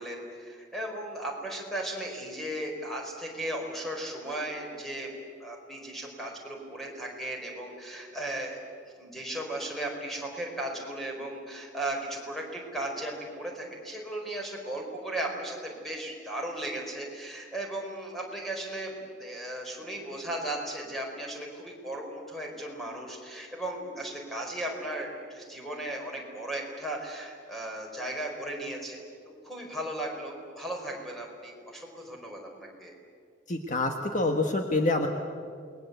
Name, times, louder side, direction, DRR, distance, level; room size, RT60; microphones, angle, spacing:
voice 1, 0.0-5.1 5.4-8.6 9.0-29.0 29.2-32.9, right 1 dB, ahead, 0 dB, 4.8 m, -36 dB
voice 2, 33.5-35.1, left 2 dB, 45° left, 4 dB, 1.5 m, -26 dB
28.5 x 20.5 x 8.1 m, 2.2 s
head